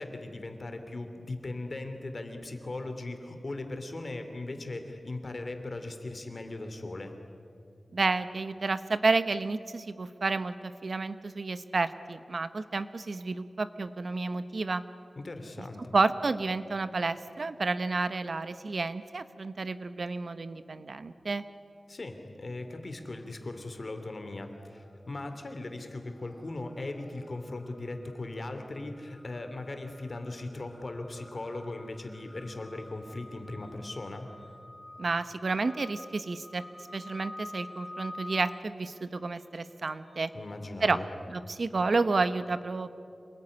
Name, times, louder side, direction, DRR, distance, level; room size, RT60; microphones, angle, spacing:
voice 1, 0.0-7.2 15.2-15.8 21.9-34.3 40.3-41.1, left 2 dB, 45° left, 7 dB, 3.0 m, -39 dB
voice 2, 7.9-14.8 15.9-21.4 35.0-40.3 40.8-41.0 41.3-43.0, right 3 dB, 60° right, 12 dB, 1.1 m, -30 dB
sound 1, 22.9-23.4 23.7-40.3, left 1 dB, ahead, 3.7 m, -49 dB
27.5 x 20.5 x 9.9 m, 2.4 s
wide cardioid pair, 100°, 0 cm